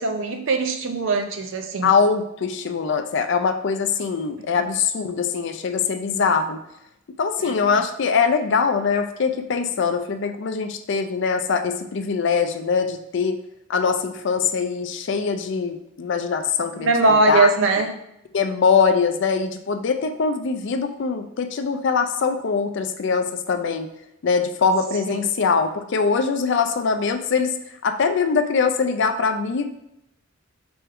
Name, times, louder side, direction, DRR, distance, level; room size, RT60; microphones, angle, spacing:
voice 1, 0.0-1.9 7.4-7.7 16.8-17.9 25.1-25.2, right 3 dB, 65° right, 4 dB, 0.6 m, -21 dB
voice 2, 1.8-6.6 7.2-13.4 13.7-16.9 17.3-17.5 18.3-23.9 24.2-27.5 27.8-29.7, left 5 dB, 60° left, 8 dB, 0.4 m, -22 dB
4.4 x 3.5 x 3.5 m, 0.80 s
head